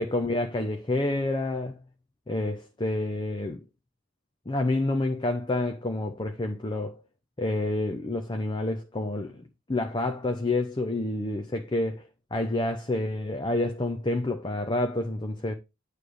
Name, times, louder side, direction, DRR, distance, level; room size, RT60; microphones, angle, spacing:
voice 1, 0.0-1.8 2.3-3.6 4.5-7.0 7.4-12.0 12.3-15.5, left 2 dB, 20° left, 0.7 m, -28 dB
9.1 x 3.3 x 6.4 m
head